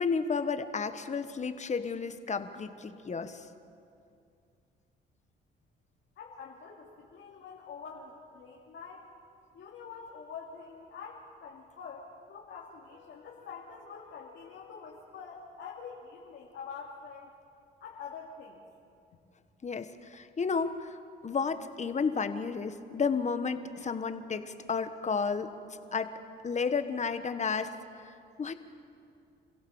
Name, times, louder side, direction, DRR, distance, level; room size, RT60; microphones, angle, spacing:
voice 1, 0.0-3.4 19.6-21.0 21.2-25.5 25.9-26.1 26.4-27.7 28.0-28.5, left 5 dB, 35° left, 9 dB, 1.4 m, -32 dB
voice 2, 6.2-9.1 9.5-17.3 17.8-18.6 19.1-19.2, left 5 dB, 70° left, -3 dB, 2.7 m, -46 dB
27.5 x 16.0 x 7.2 m, 2.5 s
cardioid pair, 90°, 20 cm